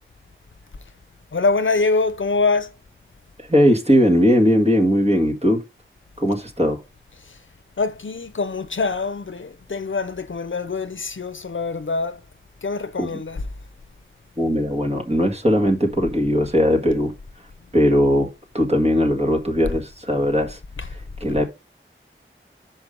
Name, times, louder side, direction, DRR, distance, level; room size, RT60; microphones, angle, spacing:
voice 1, 1.3-2.8 7.1-7.4 7.8-12.2 12.6-13.5 19.6-19.8 20.8-21.0 21.3-21.4, left 3 dB, 70° left, 0.7 m, -24 dB
voice 2, 3.4-5.6 6.2-6.8 13.0-13.1 14.4-17.1 17.7-18.3 18.5-20.6 21.2-21.5, equal, 30° right, 1.9 m, -19 dB
5.5 x 5.2 x 5.2 m
wide cardioid pair, 45°, 21 cm